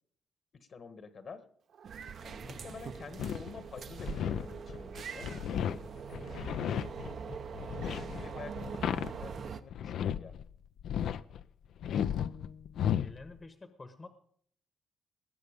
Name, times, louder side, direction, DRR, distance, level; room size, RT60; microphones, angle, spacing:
voice 1, 0.5-1.4 2.2-5.3 8.0-10.3, left 5 dB, 50° left, 10 dB, 1.4 m, -48 dB
Meow, 1.7-2.2 2.7-2.8 4.9-5.5 7.1-7.2 7.7-8.0, right 7 dB, 75° right, 1.9 m, -48 dB
sound 1, 1.8-9.6, right 6 dB, 55° right, 0.8 m, -43 dB
voice 2, 2.4-2.8 7.6-8.0 13.0-14.1, left 3 dB, 30° left, 9 dB, 1.1 m, -50 dB
sound 2, 3.2-10.5 10.8-11.4 11.8-13.3, left 9 dB, 70° left, 0.5 m, -34 dB
19.5 x 7.9 x 5.2 m, 0.62 s
cardioid pair, 90°, 0 cm